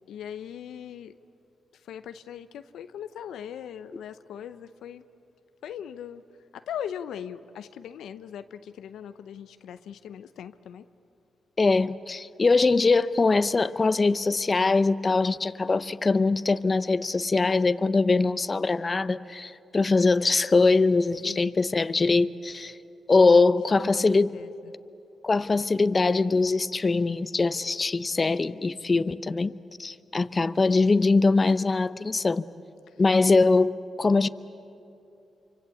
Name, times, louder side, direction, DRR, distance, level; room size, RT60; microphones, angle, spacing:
voice 1, 0.1-1.2 1.8-5.0 5.6-6.2 6.5-10.8 21.2-21.6 23.9-24.7 32.9-33.0, left 9 dB, 85° left, 0.6 m, -40 dB
voice 2, 11.6-22.7 23.1-24.4 25.2-29.5 29.8-32.4 33.0-34.3, left 3 dB, 40° left, 0.7 m, -22 dB
27.5 x 25.0 x 8.4 m
supercardioid pair, 55°, 0 cm